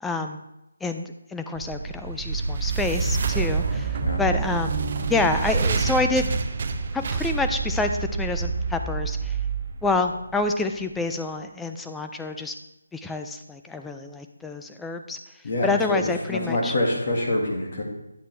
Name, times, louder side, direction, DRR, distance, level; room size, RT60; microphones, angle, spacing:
voice 1, 0.0-0.4 0.8-6.3 6.9-7.9 8.2-9.3 9.8-12.5 12.9-15.2 15.6-16.7, left 3 dB, 5° left, 5 dB, 0.3 m, -28 dB
sound 1, 1.6-10.7, right 4 dB, 35° right, 0.6 m, -27 dB
voice 2, 15.4-17.8, left 1 dB, 40° left, -1 dB, 1.9 m, -26 dB
9.9 x 6.6 x 3.3 m, 0.89 s
figure-of-eight pair, 170°, 0 cm